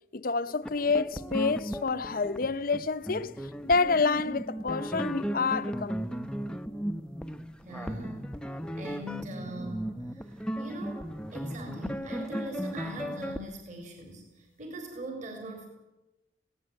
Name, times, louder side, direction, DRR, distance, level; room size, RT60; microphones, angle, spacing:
voice 1, 0.1-6.0, left 4 dB, 50° left, 0.8 m, -28 dB
sound 1, 0.6-13.4, equal, 5° left, 0.8 m, -36 dB
voice 2, 7.6-8.2 8.7-15.7, right 1 dB, 40° right, 4.6 m, -42 dB
19.0 x 17.5 x 9.0 m
head